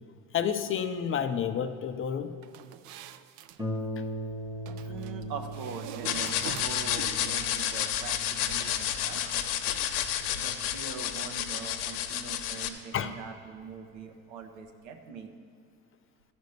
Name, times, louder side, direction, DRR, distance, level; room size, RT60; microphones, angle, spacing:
voice 1, 0.3-2.3 12.9-13.1, left 8 dB, 30° left, 9 dB, 0.5 m, -30 dB
sound 1, 2.4-3.6 4.7-5.2 5.5-7.0, right 11 dB, 60° right, 0.6 m, -44 dB
Harp, 3.6-12.8 13.6-13.7 14.2-14.3, right 1 dB, 10° right, 1.0 m, -41 dB
voice 2, 4.9-9.8 10.3-15.3, right 5 dB, 80° right, 5 dB, 1.3 m, -42 dB
sound 2, 6.0-12.7, left 10 dB, 85° left, 0.9 m, -31 dB
13.0 x 5.2 x 6.6 m, 2.3 s
supercardioid pair, 105°, 44 cm